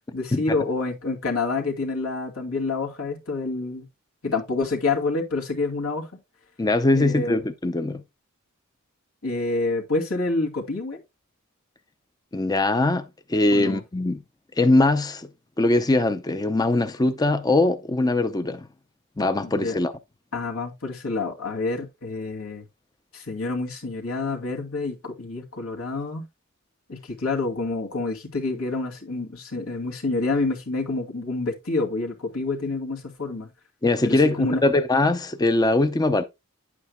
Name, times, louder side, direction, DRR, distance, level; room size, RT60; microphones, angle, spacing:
voice 1, 0.1-3.9 4.2-6.1 6.9-7.4 9.2-11.0 13.5-13.8 19.4-19.8 20.3-22.6 23.1-26.2 26.9-33.5 34.0-34.6, left 3 dB, 80° left, 2.5 m, -28 dB
voice 2, 6.6-8.0 12.3-14.2 14.6-15.3 15.6-18.7 19.2-19.9 33.8-36.2, left 2 dB, 20° left, 0.5 m, -21 dB
10.0 x 8.5 x 2.2 m
head